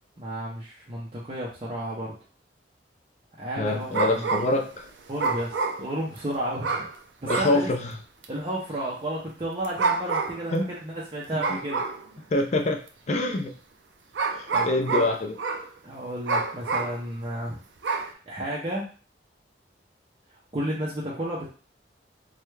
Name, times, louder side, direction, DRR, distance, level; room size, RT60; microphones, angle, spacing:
voice 1, 0.2-2.1 3.4-4.3 5.1-6.9 7.2-7.7 8.3-11.9 14.5-15.1 15.8-18.9 20.5-21.5, right 1 dB, 30° right, -5 dB, 0.6 m, -32 dB
voice 2, 3.6-4.9 7.3-7.9 10.5-10.6 11.3-11.4 12.3-12.8 13.1-13.5 14.3-15.3, left 2 dB, 40° left, 3 dB, 0.4 m, -25 dB
sound 1, 3.7-4.7 5.2-6.2 6.6-7.0 7.3-7.6 8.2-8.3 9.6-10.5 11.4-12.1 12.9-13.0 14.1-15.7 16.3-17.0 17.8-18.1, right 4 dB, 75° right, 0.5 m, -28 dB
3.3 x 2.2 x 3.2 m, 0.38 s
head